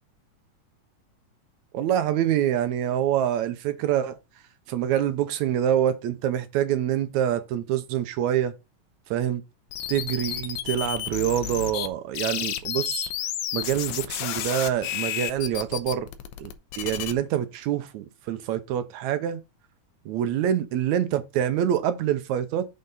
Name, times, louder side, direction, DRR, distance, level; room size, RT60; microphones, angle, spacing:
voice 1, 1.7-4.2 4.7-8.5 9.1-9.4 9.9-13.1 13.5-16.1 16.4-16.5 16.8-19.4 20.1-22.7, right 10 dB, 75° right, 2.0 m, -26 dB
sound 1, 9.7-11.9 12.1-17.1, left 11 dB, 80° left, 2.2 m, -31 dB
6.6 x 5.7 x 3.9 m
omnidirectional pair, 3.4 m